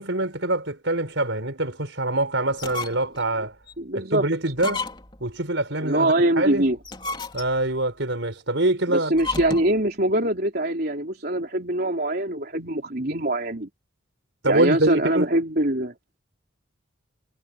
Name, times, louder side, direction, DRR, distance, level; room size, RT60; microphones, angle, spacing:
voice 1, 0.0-3.6 3.9-4.9 5.2-6.7 7.3-9.1 14.4-15.3, right 2 dB, 65° right, 4.7 m, -25 dB
sound 1, 2.5-3.2 3.7-3.8 4.5-5.2 6.7-7.7 9.1-9.8, left 3 dB, 25° left, 3.7 m, -32 dB
voice 2, 3.8-4.2 5.8-6.8 8.9-13.7 14.5-15.9, right 1 dB, 50° right, 3.7 m, -23 dB
head